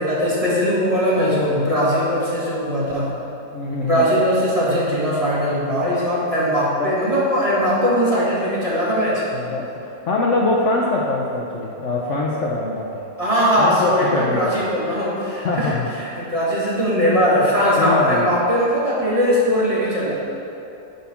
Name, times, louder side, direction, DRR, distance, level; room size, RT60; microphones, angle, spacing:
voice 1, 0.0-3.1 3.8-9.2 13.2-20.1, equal, 20° right, -7 dB, 1.6 m, -20 dB
voice 2, 1.2-1.6 3.5-4.0 6.8-6.9 9.3-9.7 10.1-13.0 13.6-14.6 15.4-15.9 17.8-18.3, left 2 dB, 60° left, -2 dB, 0.8 m, -23 dB
10.5 x 4.1 x 5.8 m, 2.8 s
omnidirectional pair, 1.9 m